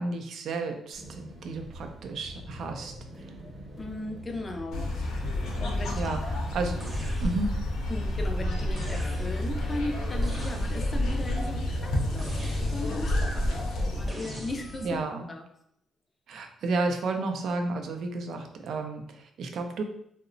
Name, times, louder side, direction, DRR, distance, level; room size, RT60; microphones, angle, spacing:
voice 1, 0.0-2.9 6.0-6.2 6.5-6.8 7.2-7.5 14.8-15.3 16.3-19.8, right 3 dB, 70° right, 5 dB, 0.4 m, -32 dB
sound 1, 0.9-15.1, equal, 45° right, 0.9 m, -44 dB
voice 2, 3.8-5.2 5.4-6.0 7.9-15.0 15.3-15.5, left 2 dB, 25° left, 4 dB, 0.4 m, -37 dB
sound 2, 4.7-14.1, left 1 dB, 85° left, 0.6 m, -29 dB
sound 3, 6.8-7.7 8.8-9.6 10.2-11.1 12.2-13.1 14.1-15.0, equal, 20° right, 0.7 m, -40 dB
2.8 x 2.0 x 2.5 m, 0.72 s
cardioid pair, 90°, 0 cm